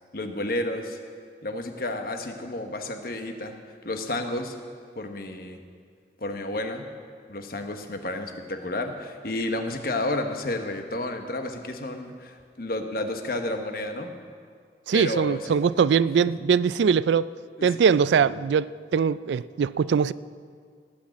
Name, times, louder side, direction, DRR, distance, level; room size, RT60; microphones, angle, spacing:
voice 1, 0.1-1.0 1.4-3.6 3.8-4.6 4.9-5.6 6.2-6.9 7.3-14.1 14.9-15.6 17.6-17.8 18.2-18.4, left 1 dB, 55° left, 5 dB, 1.2 m, -31 dB
voice 2, 14.9-17.3 17.6-20.1, right 6 dB, 80° right, 18 dB, 0.3 m, -22 dB
19.0 x 6.4 x 8.4 m, 2.1 s
head